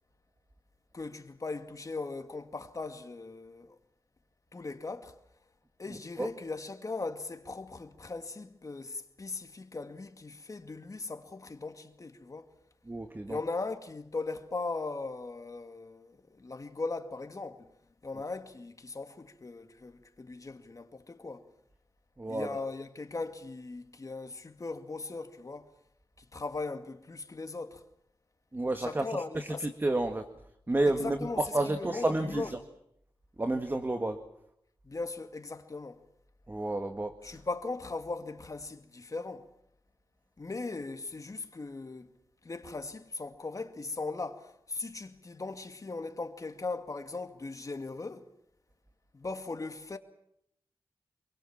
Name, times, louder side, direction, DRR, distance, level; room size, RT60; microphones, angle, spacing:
voice 1, 0.9-3.8 4.5-5.2 5.8-12.5 13.3-17.7 18.0-21.5 22.3-25.7 26.2-27.8 28.8-29.7 30.9-32.5 34.8-36.0 37.2-39.5 40.4-42.1 42.4-48.3 49.1-50.0, left 3 dB, 35° left, 2.3 m, -39 dB
voice 2, 12.9-13.4 22.2-22.5 28.5-29.1 29.4-30.3 30.7-32.6 33.4-34.2 36.5-37.1, right 2 dB, 20° right, 1.7 m, -30 dB
27.5 x 23.0 x 7.4 m
wide cardioid pair, 100°, 9 cm